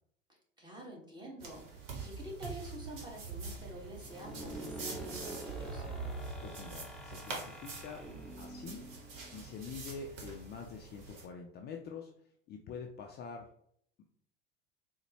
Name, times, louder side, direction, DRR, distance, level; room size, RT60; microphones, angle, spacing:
voice 1, 0.6-1.6 1.9-5.9, right 1 dB, 15° right, -2 dB, 1.3 m, -48 dB
sound 1, 1.4-11.3, right 4 dB, 60° right, 1.0 m, -45 dB
sound 2, 4.0-9.7, right 1 dB, ahead, 0.7 m, -47 dB
voice 2, 6.4-8.0 8.4-8.8 9.3-12.1 12.5-13.5, left 5 dB, 35° left, 2 dB, 0.4 m, -45 dB
3.9 x 2.1 x 2.9 m, 0.67 s
hypercardioid pair, 70°, 30 cm